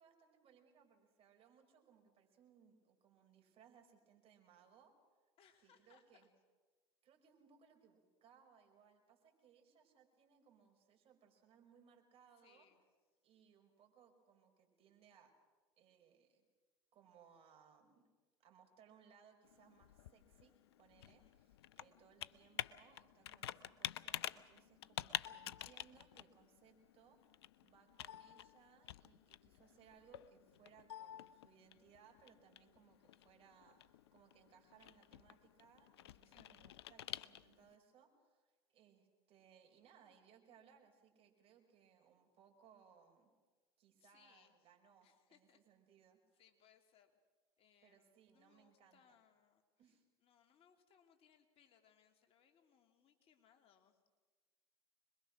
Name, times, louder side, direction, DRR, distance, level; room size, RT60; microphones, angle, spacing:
voice 1, 0.0-5.0 5.6-6.3 7.0-12.7 13.2-15.3 15.8-16.5 16.9-18.1 18.4-20.5 20.8-27.3 27.6-43.3 43.8-46.4 47.8-49.2 49.8-50.0, right 7 dB, 45° right, 3 dB, 5.3 m, -67 dB
voice 2, 5.4-6.3 12.4-12.8 21.0-21.4 36.2-36.6 44.0-44.6 45.0-45.6 46.3-47.1 47.6-54.0, left 8 dB, 45° left, 5 dB, 2.9 m, -71 dB
Computer keyboard, 19.4-37.7, left 12 dB, 80° left, 0.6 m, -50 dB
26.0 x 22.0 x 6.2 m, 1.3 s
hypercardioid pair, 80°, 13 cm